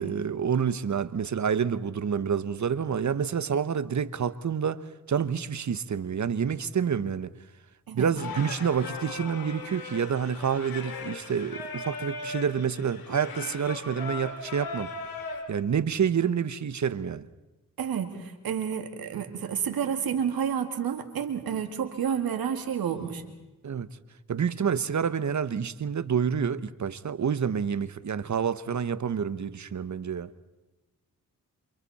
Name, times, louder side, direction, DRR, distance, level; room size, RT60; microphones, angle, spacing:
voice 1, 0.0-4.8 5.1-7.3 7.9-14.9 15.5-17.3 23.6-23.9 24.3-30.3, right 7 dB, 55° right, 1.1 m, -28 dB
Singing, 8.2-15.4, left 4 dB, 90° left, 3.4 m, -38 dB
voice 2, 17.8-23.2, right 8 dB, 85° right, 2.3 m, -30 dB
28.0 x 26.0 x 4.3 m
cardioid pair, 55°, 35 cm